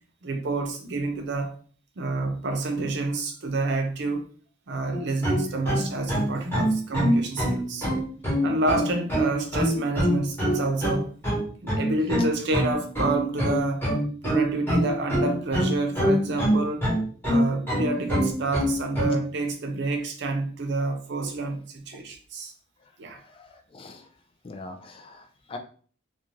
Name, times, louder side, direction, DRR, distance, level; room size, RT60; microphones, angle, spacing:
voice 1, 0.2-1.5 2.0-4.3 4.7-7.9 8.4-11.1 11.6-13.8 14.2-16.9 17.2-22.5 23.0-23.2, right 2 dB, 60° right, 0.5 m, -28 dB
sound 1, 4.9-19.2, equal, 10° left, 1.0 m, -24 dB
voice 2, 23.1-24.1 24.4-25.6, left 2 dB, 30° left, 0.3 m, -43 dB
2.5 x 2.2 x 3.1 m
head